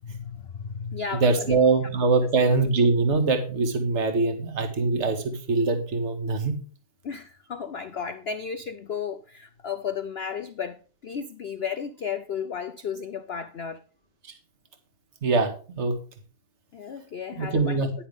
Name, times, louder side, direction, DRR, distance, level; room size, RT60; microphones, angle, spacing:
voice 1, 0.0-1.6 2.4-2.5 7.0-10.8 11.0-13.8 16.7-17.9, left 6 dB, 80° left, 0.5 m, -34 dB
voice 2, 1.1-6.6 15.2-16.0 17.4-17.9, right 3 dB, 40° right, 2.0 m, -23 dB
10.5 x 9.9 x 3.5 m
omnidirectional pair, 2.0 m